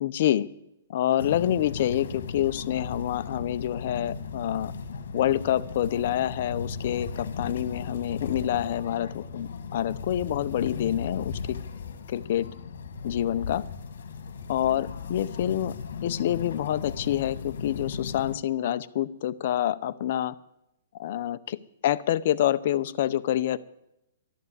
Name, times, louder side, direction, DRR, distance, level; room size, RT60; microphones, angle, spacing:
voice 1, 0.0-0.5 0.9-4.7 5.1-11.6 12.1-12.5 13.0-13.6 14.5-15.7 16.0-20.3 21.0-21.6 21.8-23.6, left 12 dB, 50° left, 15 dB, 0.6 m, -27 dB
sound 1, 1.2-18.4, left 5 dB, 75° left, 1.7 m, -37 dB
12.5 x 11.5 x 8.2 m, 0.85 s
hypercardioid pair, 155°, 0 cm